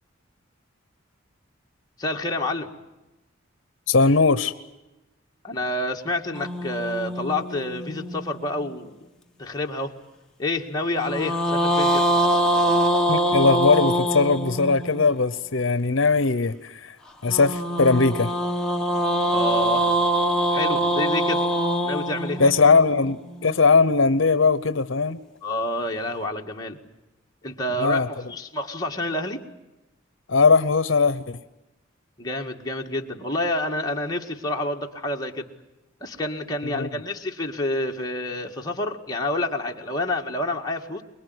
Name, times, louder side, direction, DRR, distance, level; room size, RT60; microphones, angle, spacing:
voice 1, 2.0-2.7 5.4-9.0 9.4-9.9 10.4-12.1 19.3-19.9 20.5-21.4 21.8-22.7 25.4-26.8 27.4-29.4 32.2-35.5 36.0-41.0, left 1 dB, 20° left, 0 dB, 2.0 m, -28 dB
voice 2, 3.9-4.5 13.1-17.0 17.2-18.3 22.4-25.2 27.8-28.1 30.3-31.4 36.6-36.9, left 4 dB, 70° left, 14 dB, 0.8 m, -19 dB
sound 1, 6.3-8.7 11.0-15.1 17.3-23.5, right 1 dB, 5° left, 1.6 m, -24 dB
24.5 x 22.0 x 9.5 m, 1.0 s
head